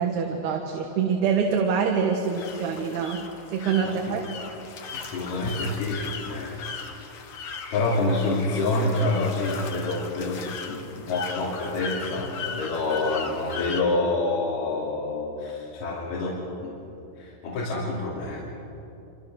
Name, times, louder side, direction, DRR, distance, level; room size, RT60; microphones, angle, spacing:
voice 1, 0.0-3.2 3.5-4.2, right 6 dB, 85° right, 2 dB, 3.5 m, -25 dB
sound 1, 2.2-13.8, left 5 dB, 55° left, 1.6 m, -38 dB
voice 2, 3.8-4.2 4.9-16.8 17.2-18.4, left 2 dB, 80° left, -6 dB, 4.8 m, -28 dB
27.0 x 26.5 x 6.4 m, 2.9 s
omnidirectional pair, 4.4 m